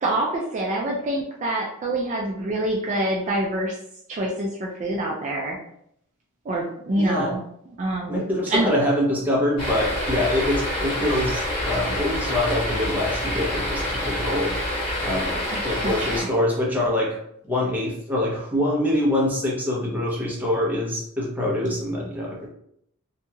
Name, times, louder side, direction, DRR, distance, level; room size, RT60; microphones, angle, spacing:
voice 1, 0.0-3.8 4.1-5.6 6.5-7.4 7.8-8.2 8.5-8.7 15.5-16.3, right 1 dB, 35° right, -2 dB, 0.3 m, -26 dB
voice 2, 7.0-7.3 8.1-14.5 15.0-17.2 17.5-22.5, left 1 dB, 10° right, -5 dB, 0.7 m, -25 dB
sound 1, 9.6-16.2, left 1 dB, 25° left, 1.3 m, -27 dB
2.9 x 2.7 x 2.3 m, 0.72 s
head